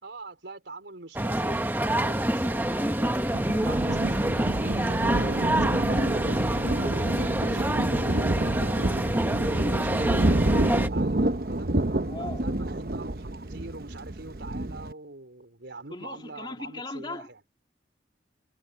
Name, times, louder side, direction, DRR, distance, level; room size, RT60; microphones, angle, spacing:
voice 1, 0.0-6.0 6.7-7.8 8.3-11.7 12.2-17.4, right 3 dB, 90° right, 4.3 m, -44 dB
sound 1, 1.2-10.9, right 1 dB, 10° right, 0.9 m, -27 dB
Thunder, 2.6-14.9, right 1 dB, 55° right, 1.0 m, -28 dB
voice 2, 12.1-12.4 15.9-17.3, left 2 dB, 25° left, 2.4 m, -38 dB
head